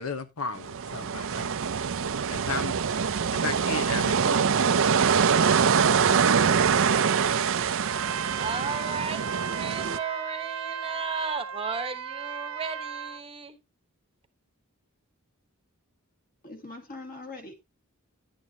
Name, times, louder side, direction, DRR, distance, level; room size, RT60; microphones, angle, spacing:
voice 1, 0.0-1.5 2.3-2.8 3.3-4.4, left 4 dB, 80° left, 1.0 m, -34 dB
sound 1, 0.6-10.0, right 6 dB, 65° right, 0.6 m, -24 dB
Trumpet, 7.8-13.2, right 7 dB, 80° right, 1.0 m, -36 dB
voice 2, 8.4-13.6, right 5 dB, 25° right, 1.0 m, -35 dB
voice 3, 16.4-17.5, left 2 dB, 45° left, 2.2 m, -41 dB
10.5 x 9.0 x 2.8 m
head